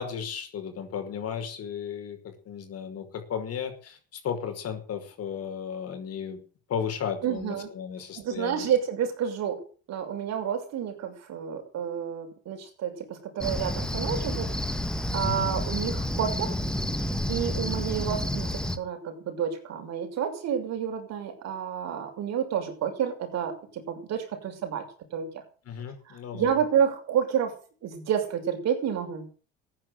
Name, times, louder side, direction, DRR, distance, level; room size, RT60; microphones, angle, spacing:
voice 1, 0.0-6.4 6.7-8.7 15.2-15.5 25.7-26.6, left 7 dB, 50° left, 6 dB, 5.5 m, -34 dB
voice 2, 7.2-7.7 8.1-9.6 9.9-14.8 15.1-16.6 17.3-24.8 25.1-25.4 26.1-27.5 27.8-29.3, right 8 dB, 60° right, 4 dB, 6.2 m, -30 dB
Cricket, 13.4-18.8, left 1 dB, 5° left, 1.8 m, -30 dB
14.5 x 10.0 x 8.0 m, 0.39 s
supercardioid pair, 100°, 30 cm